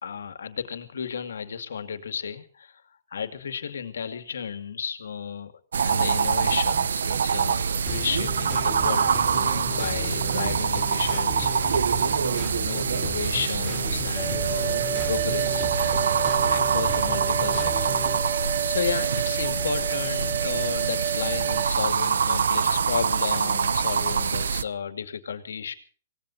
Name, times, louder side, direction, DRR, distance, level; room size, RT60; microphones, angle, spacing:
voice 1, 0.0-2.8 3.1-5.5 5.8-12.0 12.6-18.4 18.7-25.7, left 7 dB, 80° left, 9 dB, 2.3 m, -33 dB
sound 1, 5.7-24.6, right 6 dB, 85° right, 0.8 m, -25 dB
sound 2, 7.9-18.2, left 4 dB, 10° left, 5.0 m, -37 dB
sound 3, 14.2-21.7, right 8 dB, 35° right, 1.3 m, -30 dB
26.0 x 18.0 x 2.9 m, 0.42 s
hypercardioid pair, 135°, 0 cm